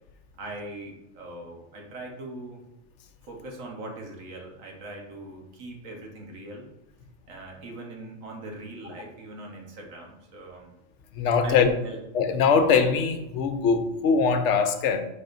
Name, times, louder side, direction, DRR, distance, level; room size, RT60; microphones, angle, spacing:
voice 1, 0.4-2.6 3.2-6.7 7.3-10.7 11.4-12.0, right 2 dB, 80° right, 0 dB, 1.6 m, -40 dB
voice 2, 11.1-11.7 12.1-15.0, left 5 dB, 70° left, 8 dB, 1.0 m, -22 dB
10.0 x 4.2 x 2.6 m, 0.89 s
omnidirectional pair, 1.3 m